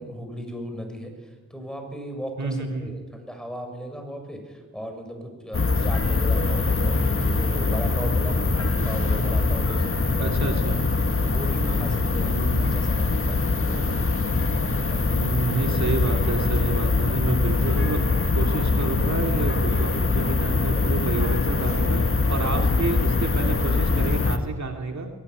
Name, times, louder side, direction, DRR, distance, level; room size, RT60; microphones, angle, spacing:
voice 1, 0.0-10.5 11.2-13.9 14.9-15.2, equal, ahead, 4 dB, 7.0 m, -36 dB
voice 2, 2.4-3.0 10.2-10.8 12.1-12.9 15.1-18.0 18.3-25.1, right 3 dB, 55° right, 3 dB, 2.9 m, -29 dB
sound 1, 5.5-24.4, left 3 dB, 40° left, 2.0 m, -23 dB
22.5 x 18.0 x 9.6 m, 1.3 s
cardioid pair, 60°, 32 cm